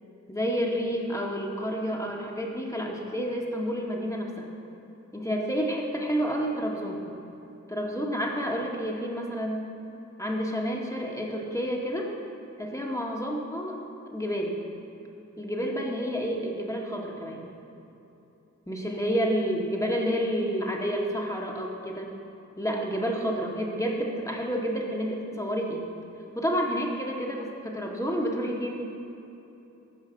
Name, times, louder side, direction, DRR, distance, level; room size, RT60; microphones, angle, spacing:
voice 1, 0.3-4.5 5.1-7.1 7.7-9.7 10.2-12.1 12.6-13.8 14.1-14.6 15.4-17.5 18.7-22.1 22.6-25.9 26.4-28.9, equal, 10° left, -1 dB, 1.7 m, -29 dB
13.5 x 5.6 x 7.7 m, 3.0 s
wide cardioid pair, 75°, 29 cm